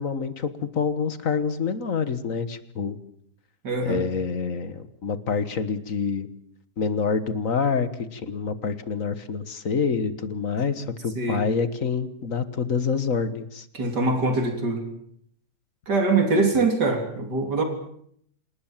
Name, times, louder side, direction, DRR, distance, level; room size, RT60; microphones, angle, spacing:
voice 1, 0.0-3.0 3.8-6.3 6.8-13.7, left 5 dB, 55° left, 12 dB, 1.8 m, -27 dB
voice 2, 3.6-4.0 11.2-11.5 13.7-14.8 15.9-17.6, right 3 dB, 90° right, 5 dB, 4.0 m, -23 dB
27.5 x 19.5 x 7.5 m, 0.67 s
omnidirectional pair, 1.7 m